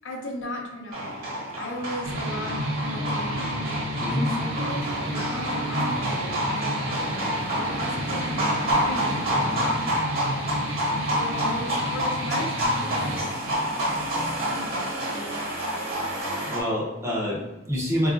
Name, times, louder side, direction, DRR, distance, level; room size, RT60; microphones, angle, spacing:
voice 1, 0.0-3.5 4.1-9.8 11.1-13.9 14.2-15.2, left 1 dB, 70° left, 0 dB, 0.7 m, -36 dB
sound 1, 0.9-16.6, equal, 45° right, 1.0 m, -28 dB
sound 2, 2.0-13.2, right 1 dB, 75° right, 0.6 m, -32 dB
voice 2, 16.5-18.1, equal, 15° right, -4 dB, 0.5 m, -27 dB
4.6 x 2.3 x 2.5 m, 1.1 s
head